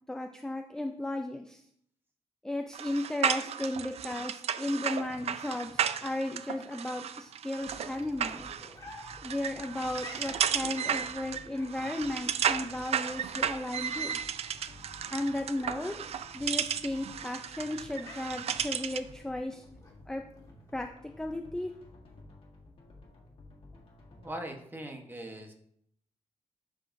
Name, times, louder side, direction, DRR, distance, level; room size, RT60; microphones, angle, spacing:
voice 1, 0.1-1.6 2.4-8.5 9.2-14.2 15.1-15.9 16.3-19.6 20.1-20.2 20.7-20.9 21.2-21.7, left 1 dB, 5° left, 4 dB, 0.4 m, -35 dB
sound 1, 2.7-19.1, right 8 dB, 60° right, 0.4 m, -34 dB
sound 2, 4.9-20.9, left 2 dB, 30° left, 1.5 m, -54 dB
sound 3, 7.6-24.3, left 2 dB, 55° left, 1.7 m, -54 dB
voice 2, 24.2-25.5, right 1 dB, 15° right, 3 dB, 1.0 m, -40 dB
12.0 x 5.1 x 2.6 m, 0.69 s
wide cardioid pair, 155°, 12 cm